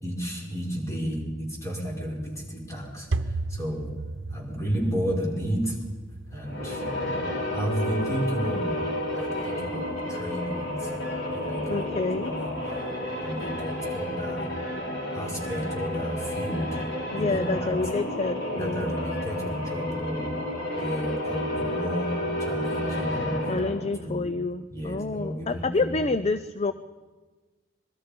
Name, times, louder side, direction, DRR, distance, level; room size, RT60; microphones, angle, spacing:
voice 1, 0.0-3.9 4.3-5.8 6.3-6.8 7.5-10.9 11.3-12.8 13.2-14.5 15.1-16.8 17.1-17.7 18.6-20.3 20.8-24.3 24.7-26.1, equal, 15° left, -1 dB, 5.5 m, -32 dB
sound 1, 2.2-13.6, right 2 dB, 80° right, 0.9 m, -39 dB
sound 2, 6.4-23.9, left 1 dB, 75° left, 6.5 m, -31 dB
voice 2, 11.7-12.3 17.1-18.9 23.5-26.7, left 3 dB, 35° left, 12 dB, 0.6 m, -28 dB
26.0 x 22.0 x 5.3 m, 1.3 s
head